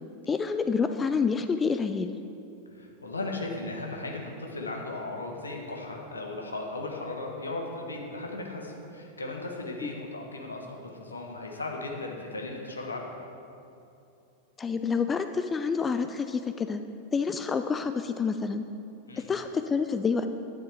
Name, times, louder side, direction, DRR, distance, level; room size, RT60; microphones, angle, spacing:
voice 1, 0.3-2.2 9.8-9.9 14.6-16.8 17.1-18.6 19.2-20.3, left 5 dB, 15° left, 9 dB, 0.3 m, -28 dB
voice 2, 2.8-13.1 19.1-19.3, left 2 dB, 75° left, 1 dB, 1.2 m, -36 dB
10.0 x 10.0 x 3.4 m, 2.7 s
figure-of-eight pair, 90°, 0 cm